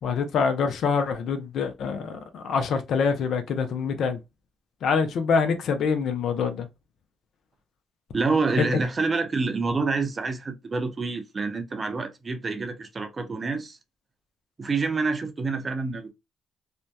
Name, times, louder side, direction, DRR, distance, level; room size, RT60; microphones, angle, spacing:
voice 1, 0.0-4.2 4.8-6.7 8.6-8.7, left 5 dB, 70° left, 0.5 m, -25 dB
voice 2, 8.1-13.8 14.6-16.1, right 3 dB, 35° right, 0.5 m, -27 dB
2.6 x 2.2 x 2.2 m
cardioid pair, 90°, 0 cm